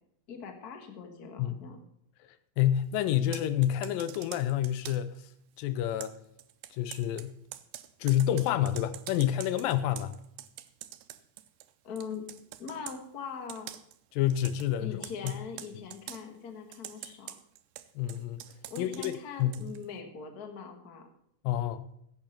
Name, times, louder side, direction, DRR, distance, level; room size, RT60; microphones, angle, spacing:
voice 1, 0.3-1.8 11.8-12.3 12.6-13.7 14.8-17.3 18.7-21.1, left 6 dB, 55° left, 1.0 m, -41 dB
voice 2, 2.6-5.3 5.6-6.1 6.7-7.4 8.0-10.1 14.1-15.3 18.0-18.4 18.8-19.1 19.4-19.7 21.4-21.9, left 11 dB, 80° left, 2.3 m, -28 dB
Computer keyboard, 3.2-5.2 6.0-11.7 12.0-13.0 13.5-14.0 14.3-14.7 15.0-16.2 16.7-19.9, right 13 dB, 75° right, 1.9 m, -45 dB
15.5 x 8.7 x 4.3 m
omnidirectional pair, 4.2 m